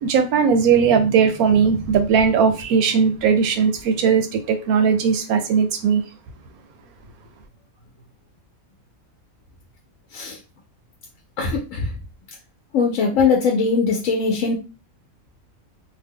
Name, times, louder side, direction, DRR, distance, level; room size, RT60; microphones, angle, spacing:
voice 1, 0.0-6.0, right 6 dB, 80° right, 7 dB, 1.1 m, -18 dB
voice 2, 11.4-11.8 12.7-14.5, left 5 dB, 65° left, 0 dB, 0.9 m, -20 dB
2.8 x 2.1 x 3.5 m, 0.30 s
omnidirectional pair, 1.5 m